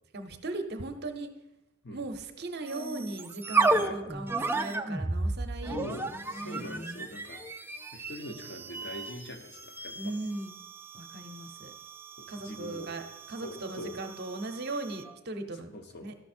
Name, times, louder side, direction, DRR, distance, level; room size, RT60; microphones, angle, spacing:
voice 1, 0.1-1.3 1.9-5.9 6.3-6.9 9.9-10.6 10.9-11.7 12.3-13.0 13.3-15.7 16.0-16.1, right 2 dB, 50° right, 6 dB, 0.7 m, -38 dB
sound 1, 2.7-15.1, right 3 dB, 10° right, 0.3 m, -34 dB
voice 2, 5.7-7.4 7.9-10.1 12.2-12.9 13.4-14.0 15.7-16.1, left 1 dB, 50° left, 4 dB, 0.9 m, -42 dB
12.5 x 5.8 x 4.3 m, 0.98 s
head